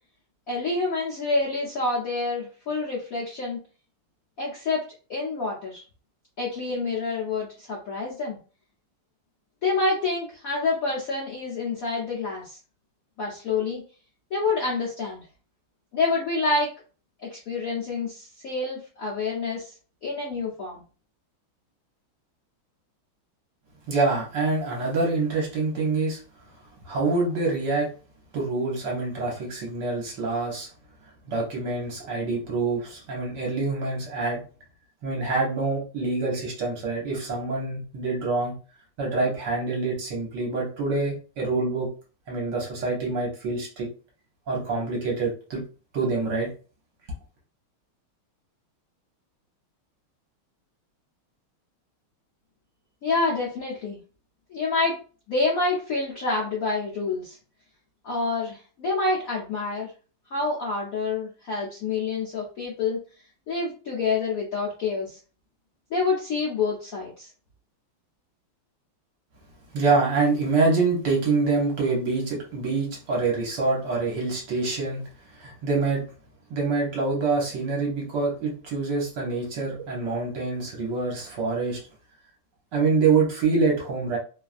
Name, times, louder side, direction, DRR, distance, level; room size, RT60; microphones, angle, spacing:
voice 1, 0.5-3.6 4.4-4.8 5.1-5.8 6.4-8.4 9.6-12.6 13.2-13.8 14.3-15.2 15.9-16.7 17.2-19.7 20.0-20.8 53.0-54.0 54.5-55.0 55.3-57.4 58.0-59.9 60.3-63.0 63.5-65.2 65.9-67.3, left 3 dB, 70° left, -4 dB, 0.8 m, -27 dB
voice 2, 23.9-26.2 26.8-27.9 28.3-30.7 31.3-34.4 35.0-38.6 39.0-41.9 42.3-43.9 44.5-45.6 45.9-46.5 69.7-75.0 75.4-76.1 76.5-81.8 82.7-84.2, right 3 dB, 60° right, -2 dB, 1.3 m, -26 dB
3.3 x 2.3 x 2.4 m, 0.37 s
omnidirectional pair, 2.3 m